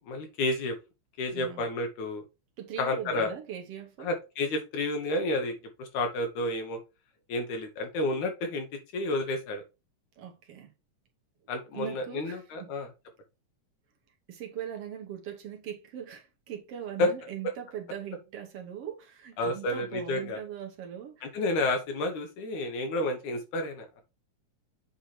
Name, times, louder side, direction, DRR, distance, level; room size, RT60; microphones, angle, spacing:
voice 1, 0.1-0.8 1.2-2.2 2.8-3.3 4.0-5.5 5.8-6.8 7.3-8.7 8.9-9.6 11.5-12.9 17.0-17.1 17.4-17.5 19.4-20.4 21.2-24.0, left 2 dB, 85° left, 2.9 m, -30 dB
voice 2, 1.3-1.6 2.6-4.1 10.2-10.7 11.7-12.7 14.3-21.4, right 9 dB, 60° right, 1.9 m, -40 dB
8.3 x 3.3 x 4.4 m
omnidirectional pair, 3.3 m